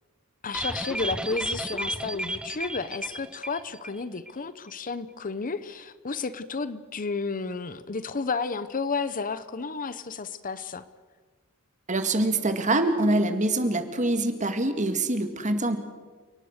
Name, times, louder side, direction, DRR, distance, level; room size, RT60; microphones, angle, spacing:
voice 1, 0.4-10.8, left 4 dB, 40° left, 14 dB, 0.9 m, -32 dB
sound 1, 0.5-4.0 4.3-4.4 4.7-4.8, right 1 dB, 5° right, 0.7 m, -33 dB
voice 2, 11.9-15.8, right 2 dB, 35° right, 8 dB, 2.1 m, -25 dB
30.0 x 18.5 x 6.6 m, 1.4 s
head